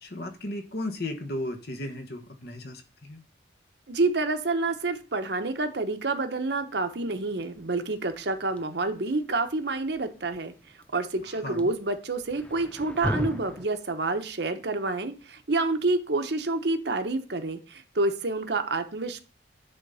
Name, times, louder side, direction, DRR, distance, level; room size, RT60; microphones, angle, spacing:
voice 1, 0.0-3.2 11.4-11.7, left 1 dB, 55° left, 5 dB, 1.3 m, -35 dB
voice 2, 3.9-10.5 10.9-19.2, right 3 dB, 60° right, 7 dB, 1.0 m, -28 dB
sound 1, 7.0-13.7, left 1 dB, 5° left, 0.4 m, -38 dB
10.0 x 3.8 x 5.6 m, 0.36 s
head